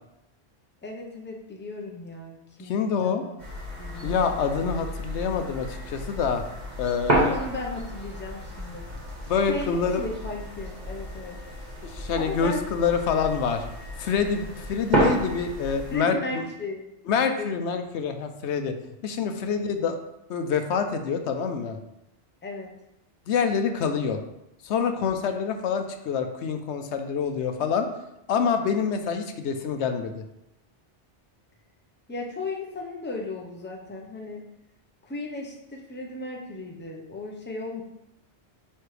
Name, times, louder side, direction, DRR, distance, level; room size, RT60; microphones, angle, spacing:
voice 1, 0.8-3.4 3.8-4.2 7.1-8.9 9.5-11.6 12.1-12.6 12.9-13.0 15.9-16.9 17.4-18.2 22.4-22.7 32.1-34.4 35.0-37.8, left 2 dB, 10° left, 0 dB, 0.7 m, -36 dB
voice 2, 2.6-3.2 4.0-6.4 6.8-7.4 9.3-10.0 11.8-13.6 14.0-16.4 17.1-18.7 19.0-20.0 20.3-21.8 23.3-24.2 24.6-27.9 28.3-30.2, left 6 dB, 75° left, 7 dB, 0.9 m, -26 dB
sound 1, 3.4-16.0, right 1 dB, 40° right, 1.7 m, -31 dB
9.2 x 3.4 x 3.3 m, 0.86 s
omnidirectional pair, 1.2 m